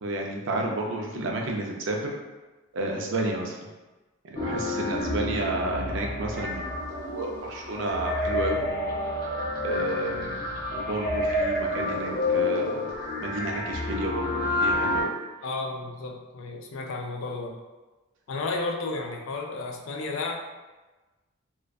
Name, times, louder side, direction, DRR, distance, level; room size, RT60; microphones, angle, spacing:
voice 1, 0.0-2.0 2.7-3.6 4.2-8.7 9.6-10.4 10.7-12.9 13.2-15.1, right 2 dB, 60° right, 1 dB, 0.4 m, -31 dB
sound 1, 4.4-15.0, left 2 dB, 40° left, 0.8 m, -29 dB
voice 2, 15.4-17.6 18.3-20.4, left 3 dB, 65° left, 2 dB, 0.3 m, -32 dB
2.5 x 2.1 x 2.3 m, 1.2 s
head